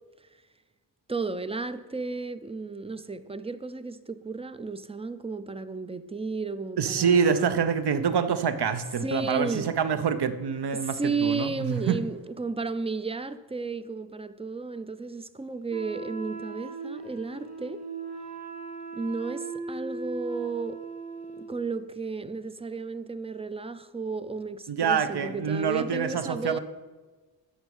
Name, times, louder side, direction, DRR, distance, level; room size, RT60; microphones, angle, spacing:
voice 1, 1.1-7.6 9.0-9.8 10.7-17.9 18.9-20.8 21.4-26.6, right 4 dB, 15° right, 0.4 m, -33 dB
voice 2, 6.8-12.0 24.7-26.6, right 6 dB, 60° right, 0.7 m, -26 dB
Wind instrument woodwind instrument, 15.7-21.6, right 4 dB, 35° right, 1.9 m, -38 dB
8.9 x 6.2 x 5.3 m
cardioid pair, 65°, 45 cm